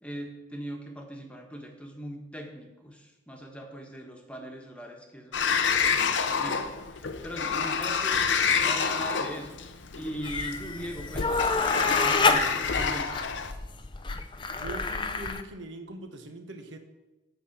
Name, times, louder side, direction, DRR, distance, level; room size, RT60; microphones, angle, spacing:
voice 1, 0.0-8.3 8.6-9.6 9.9-13.2, equal, 5° left, 2 dB, 1.2 m, -40 dB
Sliding door, 5.3-13.5, left 6 dB, 70° left, 0.7 m, -28 dB
sound 1, 10.2-15.4, left 4 dB, 25° left, 0.5 m, -28 dB
voice 2, 14.5-16.8, right 2 dB, 70° right, 6 dB, 1.2 m, -41 dB
9.4 x 5.8 x 7.2 m, 1.1 s
head